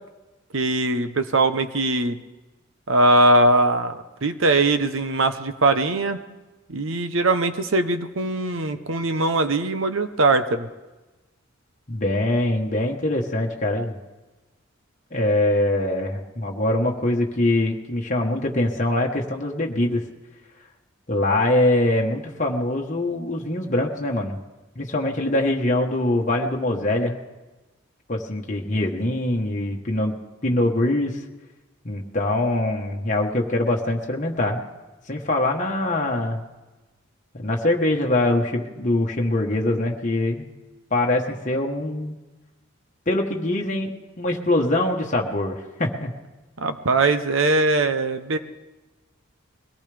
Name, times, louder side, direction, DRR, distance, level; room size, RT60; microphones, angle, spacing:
voice 1, 0.5-2.2 2.9-3.9 4.2-6.2 6.7-10.7 46.6-48.4, right 2 dB, 65° right, 10 dB, 0.9 m, -21 dB
voice 2, 11.9-14.0 15.1-20.0 21.1-24.4 24.7-27.2 28.1-30.2 30.4-31.2 31.8-34.6 35.1-36.4 37.3-40.4 40.9-42.1 43.1-46.1, left 1 dB, 35° left, 0 dB, 1.2 m, -23 dB
22.0 x 17.5 x 3.4 m, 1.2 s
head